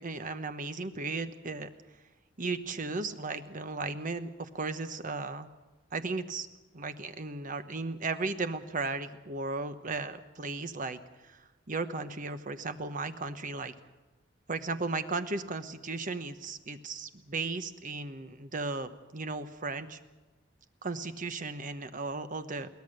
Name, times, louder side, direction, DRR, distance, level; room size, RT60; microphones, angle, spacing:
voice 1, 0.0-1.7 2.4-5.5 5.9-6.5 6.7-13.7 14.5-20.0 20.8-22.7, right 3 dB, 45° right, 10 dB, 1.1 m, -35 dB
22.5 x 18.0 x 6.6 m, 1.2 s
head